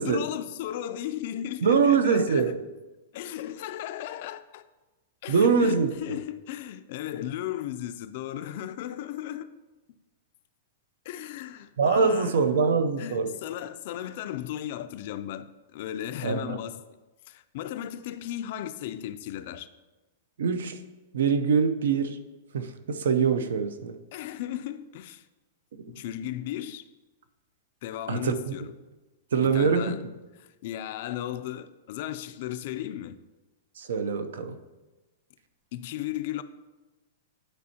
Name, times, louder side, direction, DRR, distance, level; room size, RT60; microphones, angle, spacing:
voice 1, 0.0-2.5 3.1-4.6 5.2-9.5 11.1-12.7 13.0-15.5 15.7-16.8 17.3-19.7 24.1-25.2 25.8-26.9 27.8-28.7 29.4-30.0 30.6-33.2 35.7-36.4, left 12 dB, 45° left, 0.3 m, -35 dB
voice 2, 1.6-2.6 5.3-6.2 11.8-13.3 16.2-16.6 20.4-20.8 21.1-22.2 22.5-24.0 28.1-28.5 29.3-30.0 33.8-34.6, right 5 dB, 85° right, 0.6 m, -24 dB
11.0 x 4.4 x 2.8 m
supercardioid pair, 165°, 0 cm